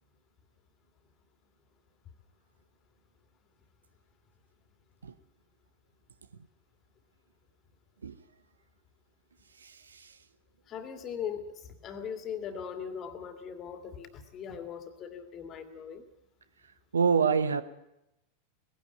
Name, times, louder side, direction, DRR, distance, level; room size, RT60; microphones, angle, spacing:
voice 1, 9.6-10.2 16.9-17.6, right 6 dB, 70° right, 1.0 m, -27 dB
voice 2, 10.7-16.0, left 7 dB, 30° left, 2.5 m, -40 dB
19.5 x 16.5 x 9.1 m
figure-of-eight pair, 90°, 0 cm